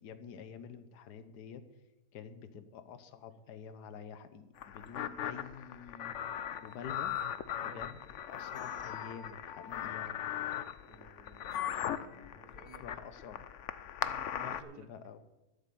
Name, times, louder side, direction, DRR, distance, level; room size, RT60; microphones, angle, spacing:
voice 1, 0.0-1.6 2.1-6.1 6.6-7.1 7.6-8.0 8.3-10.2 12.1-12.4 12.8-13.4 14.3-15.2, left 7 dB, 75° left, 11 dB, 1.5 m, -48 dB
sound 1, 4.6-14.6, left 10 dB, 60° left, 0.9 m, -39 dB
voice 2, 10.9-13.0 14.1-14.9, right 4 dB, 70° right, 7 dB, 1.7 m, -57 dB
13.0 x 7.4 x 8.5 m, 0.97 s
omnidirectional pair, 1.7 m